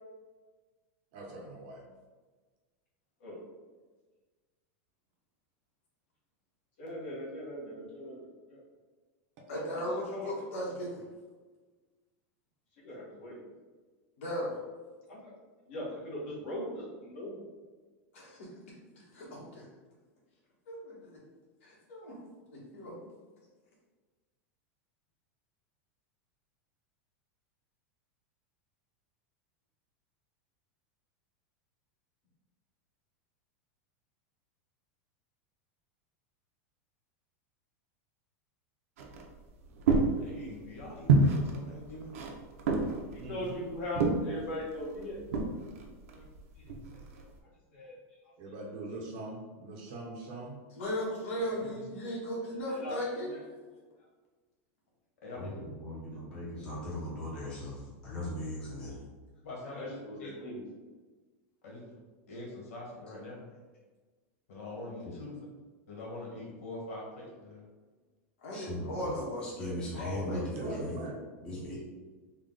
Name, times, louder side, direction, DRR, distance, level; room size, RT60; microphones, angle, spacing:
voice 1, 1.1-1.8 9.5-9.6 10.2-10.4 43.2-43.6 48.4-50.6 70.2-71.3, right 2 dB, 40° right, 0 dB, 0.6 m, -42 dB
voice 2, 6.8-8.2 8.5-8.6 9.7-9.8 10.1-10.3 12.8-13.4 15.1-15.2 15.7-17.4 43.3-45.2 46.1-46.2 47.7-47.9 52.7-53.0 59.7-60.6, left 1 dB, 45° left, -5 dB, 1.4 m, -39 dB
voice 3, 9.5-11.0 14.2-14.5 18.1-18.4 19.0-19.6 20.7-21.1 21.6-22.2 22.7-22.9 50.8-53.4 68.4-70.7, equal, 65° left, -5 dB, 1.5 m, -37 dB
sound 1, 39.0-47.3, right 3 dB, 85° right, 0.6 m, -30 dB
voice 4, 40.2-42.1 44.4-44.5 51.4-51.8 55.2-55.6 59.4-60.3 61.6-62.0 62.3-63.4 64.5-65.3 65.9-67.6, left 2 dB, 85° left, -3 dB, 1.4 m, -44 dB
voice 5, 55.3-59.0 65.0-65.1 68.5-71.0 71.4-71.8, left 1 dB, 10° left, -8 dB, 0.8 m, -39 dB
3.7 x 2.3 x 3.7 m, 1.3 s
supercardioid pair, 180°, 8 cm